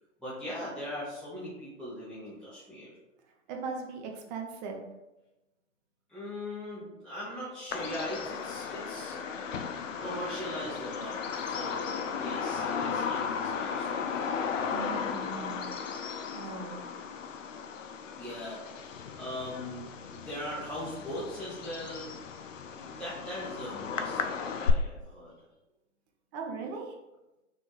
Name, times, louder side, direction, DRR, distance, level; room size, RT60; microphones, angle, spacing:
voice 1, 0.2-2.9 6.1-9.2 10.0-14.3 18.1-18.6 19.2-22.1 22.7-24.2 24.5-25.3, left 1 dB, ahead, -11 dB, 0.9 m, -40 dB
voice 2, 3.5-4.8 14.7-15.7 16.3-16.8 26.3-26.9, right 4 dB, 35° right, 1 dB, 0.7 m, -39 dB
Bird vocalization bird call bird song, 7.7-24.7, left 6 dB, 80° left, 0.5 m, -35 dB
4.1 x 2.7 x 3.0 m, 0.99 s
hypercardioid pair, 115°, 38 cm